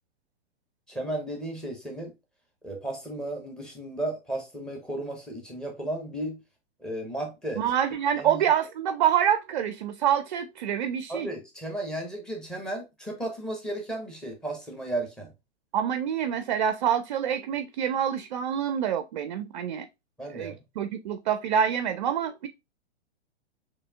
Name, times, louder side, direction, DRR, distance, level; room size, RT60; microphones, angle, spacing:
voice 1, 0.9-2.1 2.6-6.4 6.8-7.6 8.2-8.4 11.1-15.3 20.2-20.6, right 1 dB, ahead, 0.9 m, -34 dB
voice 2, 7.6-11.3 15.7-19.9 20.3-22.5, right 9 dB, 45° right, 0.4 m, -26 dB
6.7 x 2.8 x 2.2 m
figure-of-eight pair, 110°, 34 cm